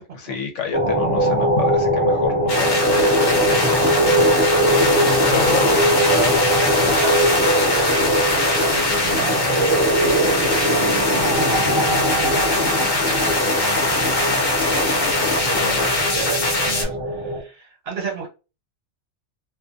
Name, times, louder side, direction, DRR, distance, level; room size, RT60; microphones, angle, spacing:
voice 1, 0.2-3.8 4.2-4.4 4.7-5.8 15.4-15.9, left 6 dB, 85° left, 4 dB, 1.0 m, -29 dB
sound 1, 0.7-17.4, right 1 dB, 35° right, 0.7 m, -22 dB
sound 2, 2.5-16.8, left 2 dB, 55° left, 1.0 m, -21 dB
voice 2, 3.9-4.5 5.6-7.3 7.6-8.3 8.9-14.9 15.4-18.3, right 5 dB, 60° right, 1 dB, 1.1 m, -33 dB
2.5 x 2.3 x 2.5 m, 0.30 s
omnidirectional pair, 1.2 m